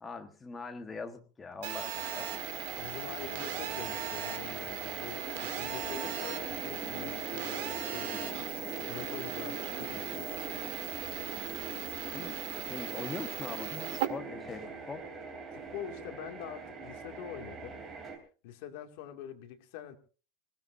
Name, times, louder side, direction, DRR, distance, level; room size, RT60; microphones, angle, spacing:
voice 1, 0.0-2.3 12.1-15.1, left 4 dB, 10° left, 5 dB, 1.4 m, -42 dB
Telephone, 1.6-14.1, right 11 dB, 70° right, 2.3 m, -39 dB
sound 1, 1.9-18.2, right 4 dB, 20° right, 3.3 m, -42 dB
voice 2, 2.8-8.4 8.9-10.4 15.5-17.8 18.4-20.0, left 10 dB, 60° left, 5 dB, 2.3 m, -45 dB
25.0 x 17.0 x 2.7 m, 0.36 s
supercardioid pair, 175°, 0 cm